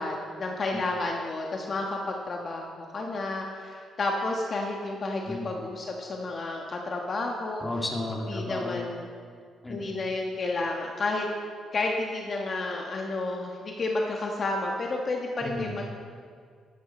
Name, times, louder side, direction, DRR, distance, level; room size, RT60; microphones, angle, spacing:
voice 1, 0.0-7.6 8.3-9.1 9.7-11.3 11.7-15.8, left 2 dB, 45° left, 0 dB, 1.3 m, -31 dB
voice 2, 7.6-8.8 9.6-9.9 15.4-15.7, left 2 dB, 15° left, 0 dB, 2.3 m, -33 dB
13.5 x 11.0 x 4.3 m, 2.1 s
cardioid pair, 90°, 0 cm